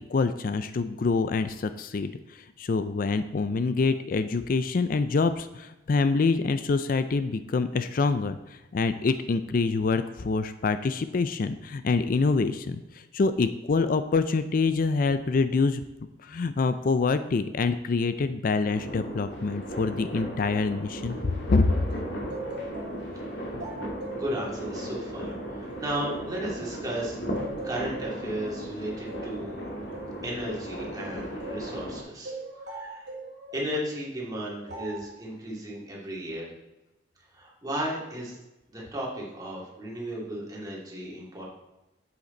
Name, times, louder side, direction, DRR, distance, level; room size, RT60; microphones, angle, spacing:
voice 1, 0.1-15.8 16.2-21.7, left 4 dB, 50° left, 11 dB, 0.4 m, -26 dB
sound 1, 18.7-32.0, equal, 80° left, 2.2 m, -36 dB
sound 2, 21.9-26.9 27.4-31.7 32.2-33.7 34.7-35.1, right 2 dB, 75° right, 1.8 m, -41 dB
voice 2, 24.1-29.7 30.2-32.4 32.7-33.1 33.5-36.5 37.3-38.4 38.7-41.4, right 1 dB, 20° right, -4 dB, 2.6 m, -35 dB
8.4 x 7.9 x 3.9 m, 0.98 s
head